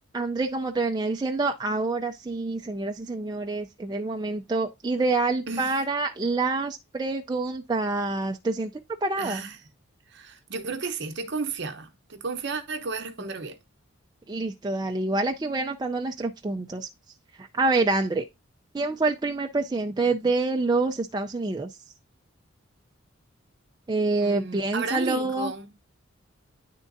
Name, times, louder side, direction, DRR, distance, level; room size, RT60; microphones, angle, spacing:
voice 1, 0.1-8.7 9.0-9.4 14.3-16.9 17.4-18.2 18.7-21.7 23.9-25.5, right 3 dB, 20° right, 0.4 m, -27 dB
voice 2, 9.2-9.6 10.1-13.6 24.2-25.7, right 4 dB, 55° right, 0.8 m, -33 dB
9.9 x 3.7 x 2.6 m
head